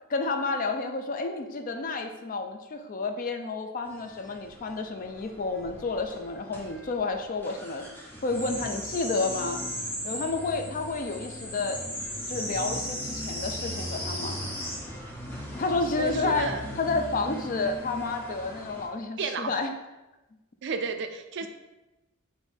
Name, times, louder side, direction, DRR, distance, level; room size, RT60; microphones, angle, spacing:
voice 1, 0.1-7.9 8.2-9.6 10.0-11.8 12.3-14.4 15.6-16.5 16.8-19.7 21.4-21.5, left 3 dB, 40° left, 6 dB, 0.4 m, -30 dB
sound 1, 3.9-18.9, equal, 10° left, 0.7 m, -37 dB
voice 2, 16.0-16.6 19.2-19.5 20.6-21.5, right 5 dB, 55° right, 7 dB, 0.4 m, -32 dB
5.1 x 2.6 x 3.3 m, 1.0 s
head